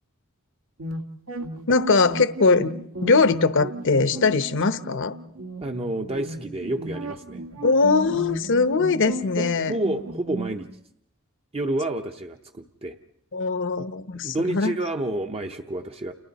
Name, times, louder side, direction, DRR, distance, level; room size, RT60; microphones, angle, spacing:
sound 1, 0.8-10.5, right 1 dB, 75° right, 1.8 m, -34 dB
voice 1, 1.7-2.7 3.0-5.1 7.6-9.8 13.3-14.8, left 4 dB, 60° left, 11 dB, 0.9 m, -21 dB
voice 2, 5.6-7.4 9.4-10.7 11.5-13.0 14.2-16.1, right 1 dB, 30° right, 4 dB, 0.8 m, -29 dB
30.0 x 29.5 x 4.1 m, 0.75 s
head